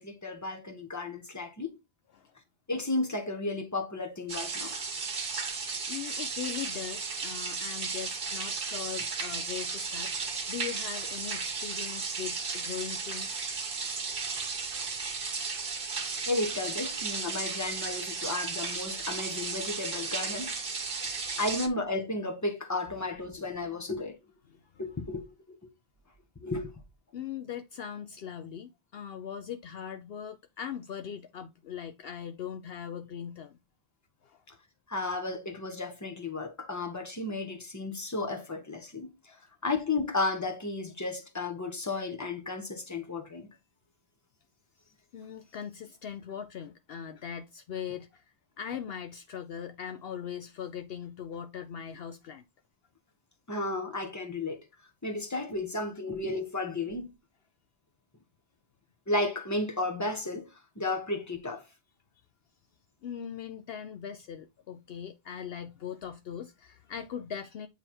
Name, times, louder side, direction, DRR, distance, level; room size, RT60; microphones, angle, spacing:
voice 1, 0.0-1.7 2.7-4.7 16.3-20.5 21.4-24.2 24.8-25.6 26.4-26.7 34.9-39.1 39.6-43.5 53.5-54.6 55.0-57.1 59.1-60.5 60.8-61.6, left 2 dB, 15° left, 1.2 m, -33 dB
sound 1, 4.3-21.7, right 4 dB, 55° right, 1.3 m, -34 dB
voice 2, 5.3-5.6 5.9-13.5 21.0-21.1 24.5-24.6 27.1-33.6 34.2-34.4 39.3-39.4 44.8-52.4 63.0-67.7, left 8 dB, 65° left, 0.8 m, -40 dB
9.2 x 3.3 x 4.4 m
omnidirectional pair, 1.1 m